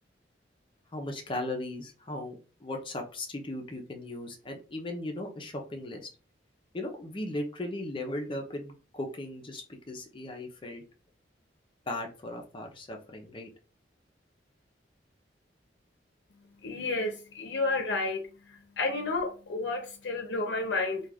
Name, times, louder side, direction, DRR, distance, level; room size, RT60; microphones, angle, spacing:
voice 1, 0.9-6.1 6.7-10.8 11.9-13.5, left 1 dB, 30° left, 0.5 m, -37 dB
voice 2, 16.6-18.2 18.8-21.0, left 3 dB, 70° left, 0.6 m, -30 dB
2.3 x 2.3 x 3.3 m
head